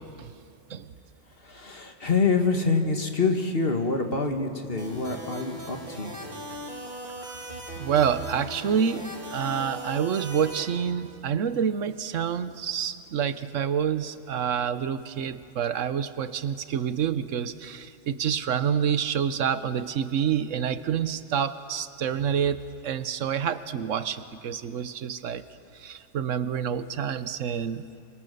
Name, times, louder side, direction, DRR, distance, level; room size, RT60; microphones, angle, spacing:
voice 1, 1.4-6.1, left 4 dB, 50° left, 4 dB, 2.0 m, -26 dB
sound 1, 4.8-10.6, equal, 35° right, 3.5 m, -39 dB
voice 2, 7.8-25.4 25.7-27.8, right 8 dB, 85° right, 13 dB, 1.2 m, -28 dB
28.5 x 22.5 x 6.8 m, 2.5 s
omnidirectional pair, 1.3 m